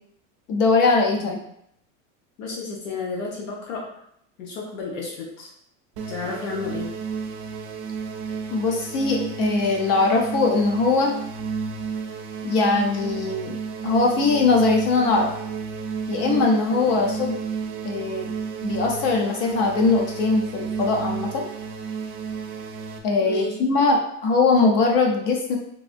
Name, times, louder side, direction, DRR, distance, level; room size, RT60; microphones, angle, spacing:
voice 1, 0.5-1.4 8.5-11.2 12.4-13.6 13.8-15.3 16.1-17.3 17.8-18.3 18.6-21.4 23.0-25.6, left 3 dB, 30° left, 2 dB, 0.4 m, -21 dB
voice 2, 2.4-3.9 4.4-5.5 6.1-6.9 16.9-17.1 23.2-23.6, left 4 dB, 80° left, -2 dB, 0.9 m, -32 dB
sound 1, 6.0-23.0, right 5 dB, 45° right, 0.4 m, -32 dB
3.4 x 2.5 x 2.4 m, 0.71 s
supercardioid pair, 165°, 39 cm